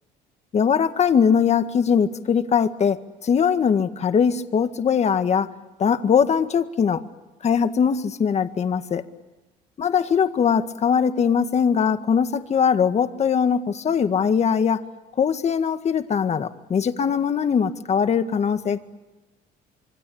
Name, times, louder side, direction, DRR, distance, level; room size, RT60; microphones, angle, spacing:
voice 1, 0.5-5.5 5.8-7.0 7.4-9.0 9.8-14.8 15.2-18.8, left 7 dB, 40° left, 9 dB, 1.8 m, -21 dB
27.0 x 24.5 x 8.8 m, 1.1 s
cardioid pair, 110°, 17 cm